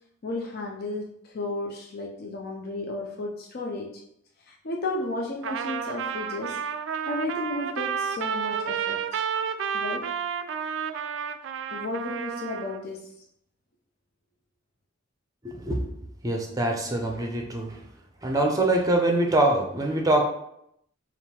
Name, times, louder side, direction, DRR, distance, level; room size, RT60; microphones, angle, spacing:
voice 1, 0.2-3.9 4.4-6.6 7.1-9.2 9.7-10.1 11.7-13.1, left 2 dB, 50° left, -1 dB, 0.5 m, -33 dB
Trumpet, 5.4-12.8, right 7 dB, 65° right, 0.3 m, -31 dB
voice 2, 15.4-15.9 16.2-17.7 18.2-20.2, right 1 dB, 20° right, 1 dB, 0.6 m, -24 dB
3.6 x 2.5 x 4.2 m, 0.74 s
head